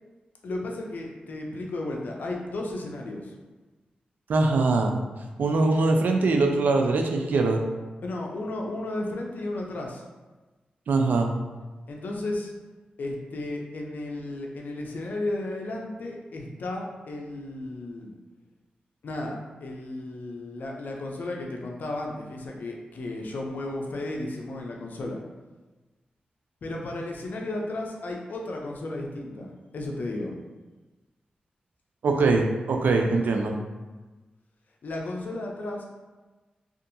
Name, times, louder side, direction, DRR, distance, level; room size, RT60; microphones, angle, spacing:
voice 1, 0.4-3.3 8.0-10.0 11.9-12.5 13.0-18.1 19.0-25.2 26.6-30.3 34.8-35.8, left 2 dB, 70° left, 0 dB, 0.5 m, -34 dB
voice 2, 4.3-5.0 5.4-7.6 10.9-11.3 32.0-33.6, right 3 dB, 75° right, 3 dB, 0.3 m, -22 dB
2.6 x 2.4 x 2.6 m, 1.2 s
cardioid pair, 55°, 3 cm